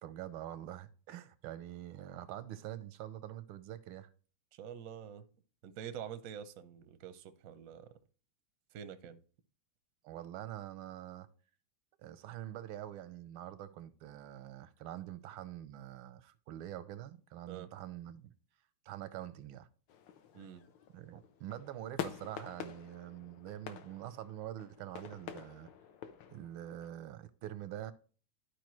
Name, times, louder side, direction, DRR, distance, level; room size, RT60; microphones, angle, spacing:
voice 1, 0.0-4.1 10.0-11.3 12.0-18.3 18.9-19.7 20.9-25.7 26.3-27.9, right 12 dB, 90° right, 1.5 m, -45 dB
voice 2, 4.5-5.2 5.6-7.9 8.7-9.2 17.5-17.7 20.3-20.6, right 9 dB, 65° right, 0.8 m, -46 dB
sound 1, 19.9-26.9, left 9 dB, 70° left, 1.4 m, -47 dB
12.0 x 4.8 x 3.1 m
omnidirectional pair, 2.2 m